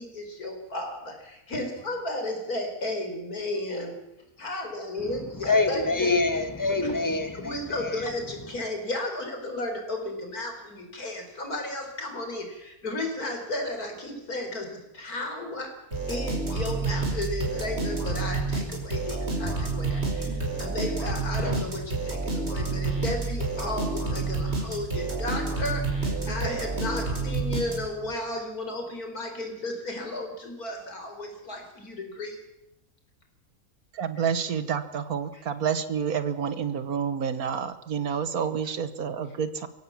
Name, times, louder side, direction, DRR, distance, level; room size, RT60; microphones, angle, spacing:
voice 1, 0.0-3.9 4.4-6.1 6.8-6.9 7.4-15.7 16.1-32.4, left 1 dB, 75° left, 3 dB, 5.0 m, -34 dB
voice 2, 5.4-7.5 7.8-7.9, left 3 dB, 10° left, 7 dB, 2.2 m, -25 dB
sound 1, 15.9-28.1, right 3 dB, 45° right, 5.5 m, -29 dB
sound 2, 19.4-19.7 21.3-21.8, left 2 dB, 25° right, 4.4 m, -36 dB
voice 3, 33.9-39.7, right 7 dB, 70° right, 12 dB, 1.7 m, -29 dB
24.0 x 16.5 x 7.4 m, 0.92 s
omnidirectional pair, 1.6 m